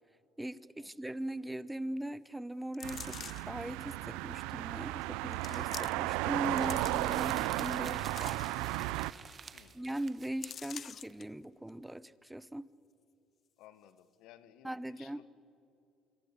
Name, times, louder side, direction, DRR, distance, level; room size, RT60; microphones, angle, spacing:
voice 1, 0.4-3.2 3.5-8.4 9.7-12.7 14.6-15.2, right 1 dB, 5° right, 18 dB, 0.8 m, -40 dB
sound 1, 2.7-3.6 4.3-4.4 5.3-6.2 6.4-7.3 7.8-8.9 9.3-9.4 9.7-9.9 10.4-11.2 11.7-11.8, left 8 dB, 50° left, 0.6 m, -47 dB
sound 2, 2.8-9.1, right 19 dB, 80° right, 0.5 m, -34 dB
sound 3, 6.5-11.1, right 6 dB, 40° right, 1.6 m, -49 dB
voice 2, 13.6-15.3, left 12 dB, 75° left, 14 dB, 1.4 m, -58 dB
26.5 x 22.5 x 8.5 m, 2.7 s
supercardioid pair, 75°, 0 cm